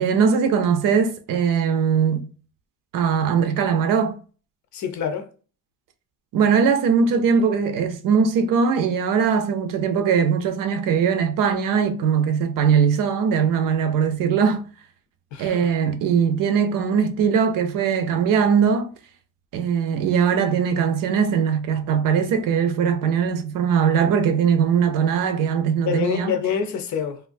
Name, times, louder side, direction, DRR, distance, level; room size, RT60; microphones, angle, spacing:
voice 1, 0.0-2.3 2.9-4.2 6.3-14.6 15.4-18.9 19.5-26.4, right 6 dB, 60° right, 0.6 m, -20 dB
voice 2, 4.7-5.3 15.3-15.7 25.8-27.2, left 7 dB, 50° left, 0.6 m, -26 dB
3.3 x 2.5 x 2.5 m
cardioid pair, 170°, 37 cm